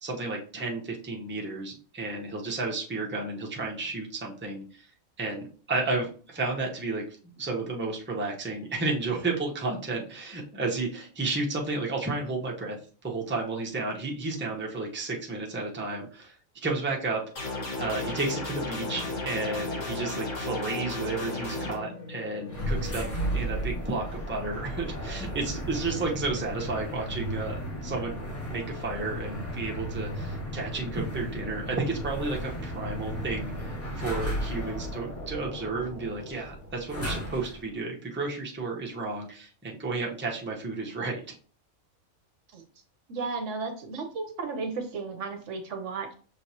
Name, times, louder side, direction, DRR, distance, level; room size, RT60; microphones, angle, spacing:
voice 1, 0.0-4.9 5.2-12.8 13.0-16.3 16.6-17.5 17.8-28.2 28.5-41.4, right 3 dB, 10° right, -1 dB, 0.7 m, -32 dB
sound 1, 17.4-21.7, left 2 dB, 70° left, 1.8 m, -34 dB
sound 2, 17.9-23.9, left 4 dB, 85° left, 1.8 m, -42 dB
sound 3, 22.5-37.7, equal, 45° left, 2.3 m, -34 dB
voice 2, 43.1-46.1, right 4 dB, 65° right, 5 dB, 1.0 m, -34 dB
6.3 x 3.1 x 2.8 m, 0.41 s
omnidirectional pair, 1.4 m